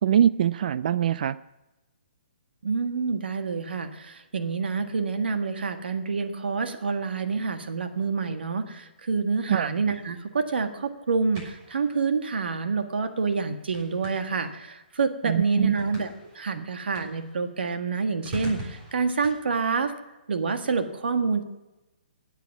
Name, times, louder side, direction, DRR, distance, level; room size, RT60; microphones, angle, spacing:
voice 1, 0.0-1.4 9.5-9.7 15.2-15.7 16.6-16.7, right 9 dB, 55° right, 16 dB, 0.4 m, -23 dB
voice 2, 2.6-16.1 16.3-19.9 20.3-21.4, right 4 dB, 80° right, 7 dB, 1.6 m, -27 dB
sound 1, 9.4-19.3, equal, 30° right, 6.1 m, -46 dB
19.0 x 8.2 x 7.2 m, 0.99 s
hypercardioid pair, 150°, 5 cm